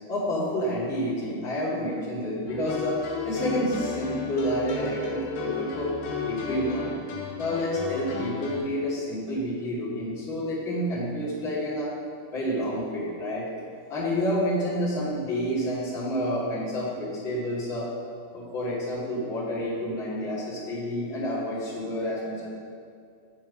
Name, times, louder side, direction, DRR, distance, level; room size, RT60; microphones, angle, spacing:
voice 1, 0.1-5.9 6.2-7.0 7.4-11.9 12.3-13.5 13.9-17.9 18.3-22.5, equal, 35° left, -8 dB, 2.4 m, -29 dB
sound 1, 2.5-8.6, left 5 dB, 85° left, 3.4 m, -34 dB
9.8 x 5.9 x 5.1 m, 2.2 s
omnidirectional pair, 4.6 m